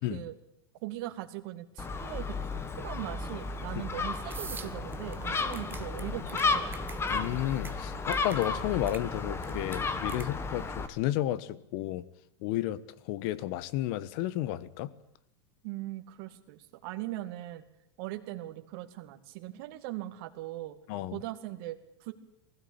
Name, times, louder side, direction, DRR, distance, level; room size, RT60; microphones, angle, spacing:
voice 1, 0.8-6.2 6.5-6.7 15.6-17.6 18.0-20.8 21.1-22.1, right 16 dB, 55° right, 5 dB, 2.4 m, -40 dB
Gull seagull, 1.8-10.9, left 4 dB, 20° left, 1.7 m, -33 dB
sound 1, 4.3-10.3, right 5 dB, 15° right, 1.3 m, -46 dB
voice 2, 7.1-12.0 12.4-12.8 13.1-14.9 20.9-21.2, left 14 dB, 55° left, 18 dB, 1.3 m, -32 dB
21.0 x 16.0 x 8.9 m, 0.81 s
supercardioid pair, 135°, 14 cm